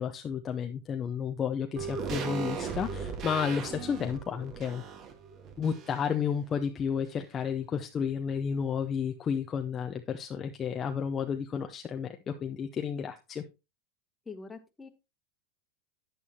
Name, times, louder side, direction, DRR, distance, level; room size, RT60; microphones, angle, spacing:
voice 1, 0.0-4.8 5.6-13.4, left 7 dB, 30° left, 5 dB, 0.7 m, -32 dB
sound 1, 1.8-6.2 6.5-6.6, right 6 dB, 40° right, 1.6 m, -38 dB
voice 2, 14.2-14.9, left 4 dB, 15° left, 7 dB, 1.4 m, -44 dB
9.3 x 8.4 x 2.9 m, 0.26 s
hypercardioid pair, 110°, 0 cm